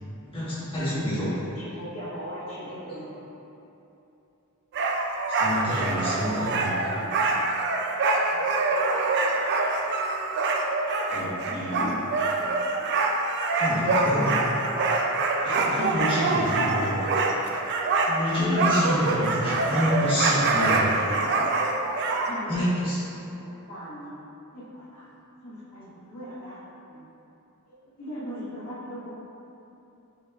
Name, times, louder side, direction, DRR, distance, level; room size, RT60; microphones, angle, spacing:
voice 1, 0.3-1.3 5.3-6.8 11.1-11.9 13.5-14.5 15.4-17.0 18.0-20.8 22.5-23.0, left 1 dB, 25° left, -11 dB, 1.2 m, -28 dB
voice 2, 1.0-3.2 6.0-7.3 8.3-8.7 11.4-12.3 18.6-21.5 22.2-22.7 23.1-24.2 24.5-25.1 25.4-26.6 26.9-27.0 27.7-29.1, equal, 75° left, -11 dB, 1.5 m, -40 dB
sound 1, 4.7-22.3, right 3 dB, 50° right, 0.3 m, -25 dB
5.4 x 3.1 x 2.3 m, 2.9 s
head